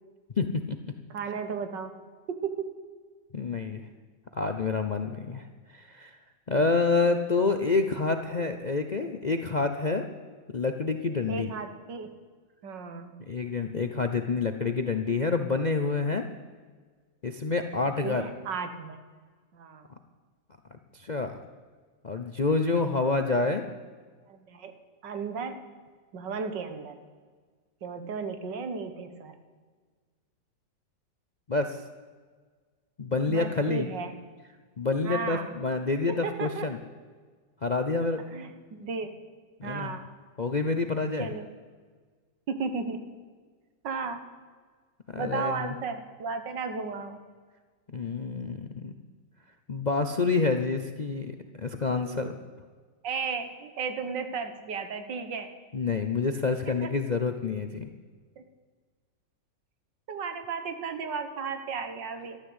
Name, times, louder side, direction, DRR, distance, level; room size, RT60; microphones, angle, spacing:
voice 1, 0.4-0.8 3.3-3.8 4.3-6.1 6.5-10.1 10.5-11.5 13.3-16.3 17.2-18.3 20.9-21.3 22.0-23.6 31.5-31.8 33.0-33.9 34.8-36.8 37.6-38.2 39.6-39.9 40.4-41.3 45.1-45.7 47.9-48.9 49.7-52.4 55.7-57.9, left 4 dB, 45° left, 7 dB, 0.5 m, -28 dB
voice 2, 1.1-1.9 2.3-2.7 11.3-12.1 12.6-13.1 18.0-19.0 19.5-19.9 24.3-24.7 25.0-25.6 26.1-27.0 27.8-29.3 33.3-34.1 35.0-35.5 36.1-36.7 38.3-39.1 39.6-40.1 41.2-41.5 42.5-43.0 43.8-44.2 45.2-47.2 52.0-52.3 53.0-55.5 56.8-56.9 58.4-58.5 60.1-62.4, right 5 dB, 85° right, 8 dB, 2.0 m, -34 dB
13.5 x 12.0 x 8.1 m, 1.5 s
omnidirectional pair, 1.9 m